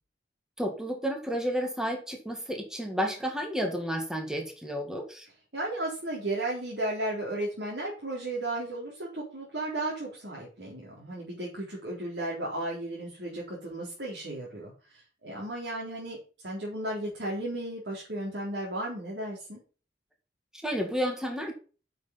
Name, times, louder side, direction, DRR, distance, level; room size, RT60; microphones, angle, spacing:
voice 1, 0.6-5.3 20.6-21.5, equal, 5° right, 3 dB, 1.9 m, -31 dB
voice 2, 5.5-16.2 16.4-19.6, right 1 dB, 75° right, -4 dB, 3.8 m, -34 dB
9.0 x 6.7 x 5.6 m, 0.36 s
head